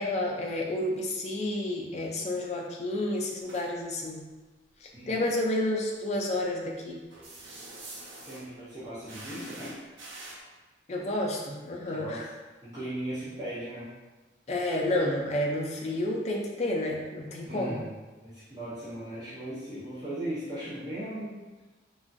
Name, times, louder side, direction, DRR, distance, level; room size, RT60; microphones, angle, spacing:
voice 1, 0.0-4.2 4.8-7.0 10.9-12.3 14.5-17.8, left 1 dB, 35° left, 0 dB, 0.4 m, -30 dB
sound 1, 3.4-3.7 5.9-6.0 7.1-8.5 9.1-10.4, right 2 dB, 80° right, 0.7 m, -45 dB
voice 2, 4.9-5.3 8.2-9.8 11.9-12.3 12.6-13.9 17.4-17.9 18.2-21.4, right 1 dB, 20° right, -12 dB, 0.6 m, -37 dB
3.0 x 2.3 x 2.5 m, 1.2 s
head